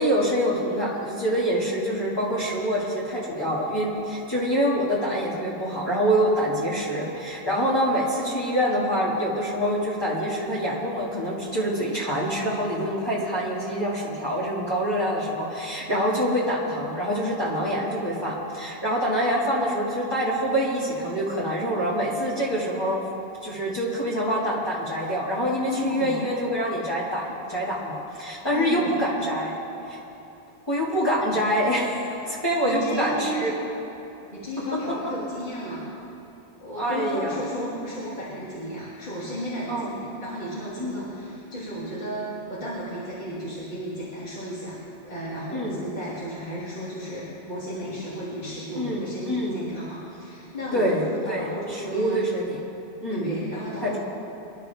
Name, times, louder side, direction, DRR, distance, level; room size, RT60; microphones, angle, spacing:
voice 1, 0.0-23.0 23.4-29.5 29.9-30.0 30.7-33.5 34.9-35.1 36.8-37.3 39.7-39.9 40.8-41.0 45.5-45.8 48.8-49.6 50.7-52.6 53.0-53.3 53.8-54.0, equal, 20° left, -8 dB, 2.3 m, -26 dB
voice 2, 25.6-26.2 28.5-29.1 32.6-33.4 34.3-35.9 36.6-52.2 53.1-54.0, equal, 45° left, -9 dB, 2.8 m, -33 dB
25.5 x 11.5 x 3.5 m, 2.8 s
omnidirectional pair, 1.1 m